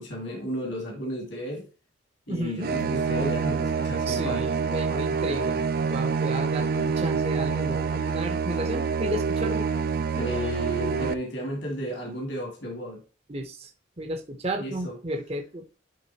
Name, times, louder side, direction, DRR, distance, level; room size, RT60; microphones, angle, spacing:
voice 1, 0.0-1.7 2.3-4.4 10.1-13.0 14.6-15.0, equal, 60° left, 2.2 m, -33 dB
voice 2, 2.3-2.7 4.1-9.7 13.3-13.7 14.0-15.8, right 1 dB, 30° right, 0.8 m, -33 dB
sound 1, 2.6-11.1, right 5 dB, 45° right, 0.4 m, -27 dB
10.5 x 3.7 x 2.8 m
head